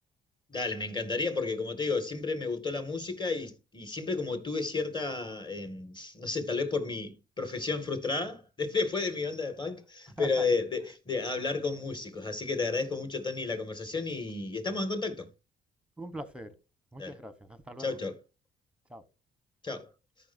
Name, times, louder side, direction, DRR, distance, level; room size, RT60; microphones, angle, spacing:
voice 1, 0.5-15.3 17.0-17.2 17.8-18.2 19.6-19.9, left 3 dB, 25° left, 2.2 m, -32 dB
voice 2, 16.0-16.6 16.9-18.0 18.9-19.0, right 1 dB, 5° right, 1.1 m, -42 dB
13.5 x 5.7 x 2.7 m
cardioid pair, 90°, 20 cm